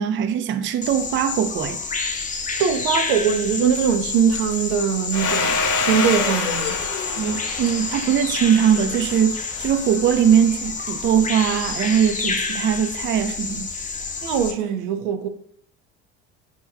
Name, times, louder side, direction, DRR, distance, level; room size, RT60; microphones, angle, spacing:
voice 1, 0.0-1.8 7.2-13.7, right 8 dB, 35° right, 0.4 m, -21 dB
Bird vocalization bird call bird song, 0.8-14.5, left 4 dB, 25° left, 0.7 m, -29 dB
voice 2, 2.6-5.6 5.9-6.8 14.2-15.3, right 7 dB, 80° right, 0.6 m, -21 dB
Domestic sounds home sounds, 5.1-9.5, left 4 dB, 70° left, 0.8 m, -26 dB
4.6 x 2.2 x 3.4 m
hypercardioid pair, 75°, 33 cm